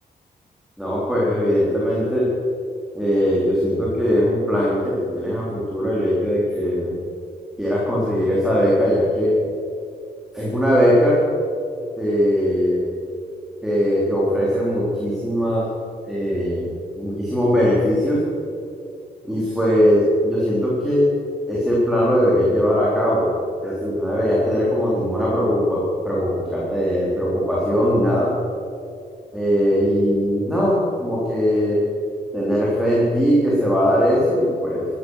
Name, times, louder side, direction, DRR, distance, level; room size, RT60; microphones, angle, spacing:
voice 1, 0.8-2.3 2.9-7.0 7.6-9.3 10.3-11.2 12.0-12.8 13.6-15.7 16.1-18.2 19.2-21.1 21.5-23.3 23.6-28.3 29.3-31.8 32.3-34.9, equal, ahead, -6 dB, 3.8 m, -20 dB
16.5 x 13.0 x 6.5 m, 2.5 s
cardioid pair, 110°, 16 cm